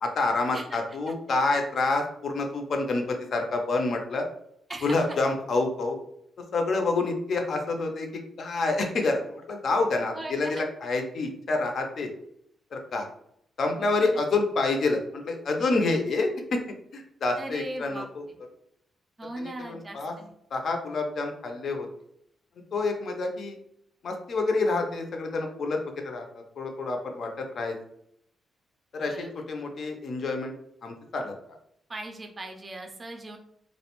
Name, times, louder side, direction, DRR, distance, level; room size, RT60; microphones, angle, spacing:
voice 1, 0.0-4.3 4.8-6.0 6.5-8.1 8.4-12.1 12.7-13.1 13.6-16.6 16.9-18.2 19.4-20.1 20.5-21.9 22.7-23.6 24.0-25.8 26.0-26.2 26.6-27.8 28.9-29.1 29.5-30.5 30.8-31.3, left 3 dB, 55° left, 3 dB, 0.4 m, -28 dB
voice 2, 4.7-5.1 10.1-10.6 14.0-14.2 17.4-18.4 19.2-20.3 29.1-29.4 31.9-33.4, right 1 dB, 25° right, 3 dB, 0.4 m, -39 dB
2.4 x 2.1 x 2.9 m, 0.72 s
cardioid pair, 120°, 0 cm